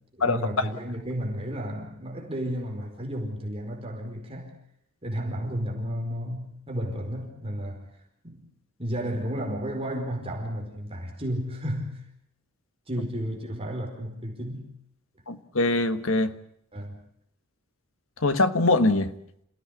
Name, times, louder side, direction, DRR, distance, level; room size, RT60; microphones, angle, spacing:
voice 1, 0.1-4.5 5.0-7.9 8.2-8.4 8.8-12.0 12.9-14.7 16.7-17.0, equal, 25° right, 4.9 m, -32 dB
voice 2, 15.3-16.3 18.2-19.1, left 2 dB, 65° left, 1.5 m, -22 dB
28.0 x 16.5 x 8.5 m
head